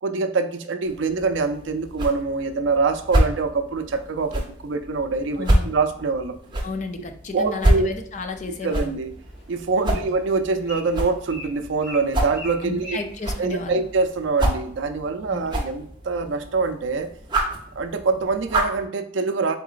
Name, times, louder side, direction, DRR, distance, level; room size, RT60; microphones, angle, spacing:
voice 1, 0.0-6.4 7.3-7.9 8.6-9.1 9.5-13.0 13.4-17.1 17.8-19.6, right 4 dB, 80° right, 8 dB, 0.4 m, -24 dB
sound 1, 0.8-18.9, right 1 dB, 25° right, 0.6 m, -28 dB
voice 2, 5.4-5.7 6.6-8.9 9.9-10.1 12.6-13.8 15.3-15.5, left 3 dB, 40° left, 7 dB, 0.4 m, -32 dB
Bird, 9.1-14.3, left 2 dB, 90° left, 1.6 m, -43 dB
3.9 x 3.8 x 2.4 m, 0.64 s
head